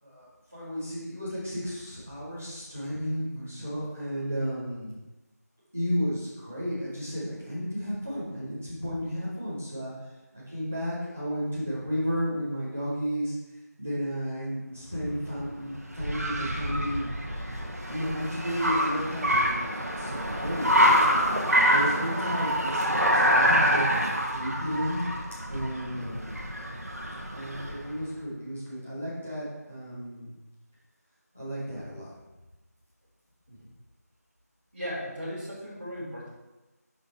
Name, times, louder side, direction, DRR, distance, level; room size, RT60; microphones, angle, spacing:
voice 1, 0.0-5.0 5.7-9.9 10.3-13.3 13.8-17.1 17.9-20.7 21.6-25.2 25.5-26.5 27.3-30.4 31.3-32.1, equal, 5° right, -12 dB, 0.7 m, -33 dB
Car, 15.0-27.9, equal, 60° right, 1.3 m, -26 dB
voice 2, 34.7-36.3, equal, 35° right, -9 dB, 2.7 m, -36 dB
6.4 x 5.5 x 4.5 m, 1.1 s
figure-of-eight pair, 175°, 9 cm